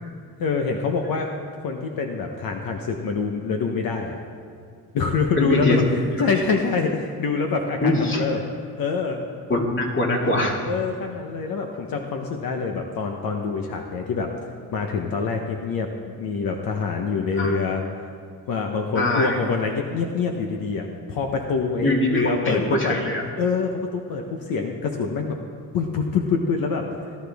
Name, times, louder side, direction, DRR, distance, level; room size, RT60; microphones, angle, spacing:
voice 1, 0.4-1.3 1.6-4.2 4.9-8.4 8.7-9.2 10.6-14.3 14.7-17.8 18.5-23.0 23.4-25.4 25.7-26.8, left 4 dB, 70° left, 2 dB, 1.1 m, -25 dB
voice 2, 5.4-5.8 7.8-8.2 9.5-10.6 17.4-17.6 18.9-19.4 21.8-23.2, left 1 dB, 35° left, 0 dB, 2.3 m, -22 dB
18.0 x 11.5 x 3.6 m, 2.3 s
cardioid pair, 100°, 36 cm